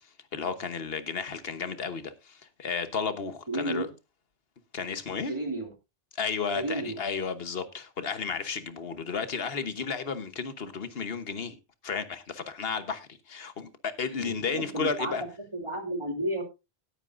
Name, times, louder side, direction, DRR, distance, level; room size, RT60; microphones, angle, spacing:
voice 1, 0.3-3.9 4.7-5.3 6.2-11.6 11.8-15.2, left 5 dB, 65° left, 1.4 m, -33 dB
voice 2, 3.5-3.9 5.3-5.7 6.5-7.0 14.2-15.1 15.5-16.4, right 1 dB, 30° right, 2.7 m, -32 dB
17.5 x 9.0 x 2.5 m
omnidirectional pair, 1.1 m